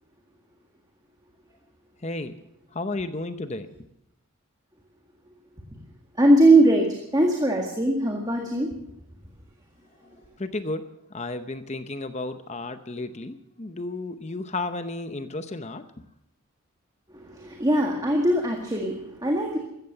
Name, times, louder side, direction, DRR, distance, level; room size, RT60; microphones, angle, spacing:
voice 1, 2.0-2.4 2.7-3.7 10.2-16.1, left 2 dB, 30° left, 10 dB, 0.8 m, -33 dB
voice 2, 6.2-8.7 17.1-19.6, right 1 dB, 20° right, 1 dB, 1.8 m, -21 dB
15.0 x 14.5 x 6.7 m, 0.81 s
head